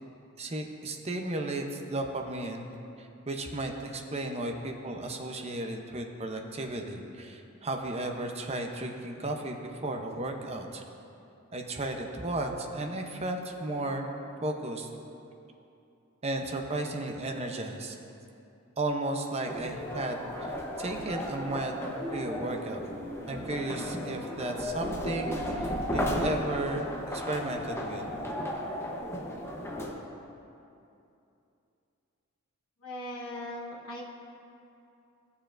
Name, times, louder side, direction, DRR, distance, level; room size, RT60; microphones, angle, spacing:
voice 1, 0.4-2.7 3.0-10.8 11.5-14.1 14.4-14.9 16.2-18.0 18.8-20.5 20.8-21.8 22.1-22.8 23.3-28.0, right 2 dB, 30° right, 3 dB, 0.7 m, -34 dB
sound 1, 19.5-29.9, equal, 10° left, 0.8 m, -34 dB
voice 2, 32.8-34.0, left 1 dB, 70° left, -4 dB, 1.1 m, -39 dB
15.5 x 7.0 x 2.5 m, 2.7 s
head